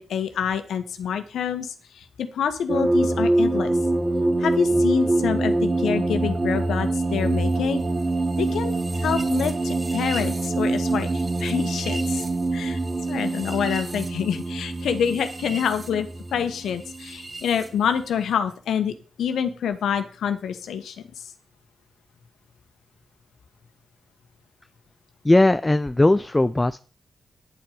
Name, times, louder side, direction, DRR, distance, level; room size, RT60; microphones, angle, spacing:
voice 1, 0.0-3.8 4.4-7.8 8.4-12.2 12.5-12.8 13.1-21.3, left 8 dB, 80° left, 9 dB, 1.2 m, -27 dB
sound 1, 2.7-17.7, right 2 dB, 35° right, 2.9 m, -25 dB
voice 2, 25.2-26.8, left 2 dB, 20° left, 12 dB, 0.5 m, -18 dB
10.0 x 7.7 x 4.9 m, 0.39 s
supercardioid pair, 50°, 0 cm